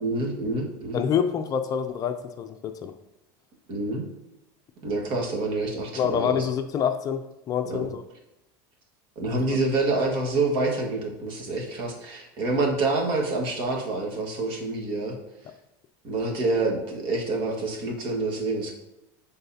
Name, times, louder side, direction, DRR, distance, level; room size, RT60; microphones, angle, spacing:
voice 1, 0.0-1.0 3.7-4.1 4.8-6.5 7.7-7.9 9.1-15.2 16.0-18.7, right 2 dB, 50° right, 0 dB, 1.7 m, -27 dB
voice 2, 0.9-2.9 6.0-7.2 7.5-8.0, left 8 dB, 35° left, 7 dB, 0.5 m, -26 dB
11.0 x 3.9 x 2.8 m, 0.92 s
supercardioid pair, 130°, 11 cm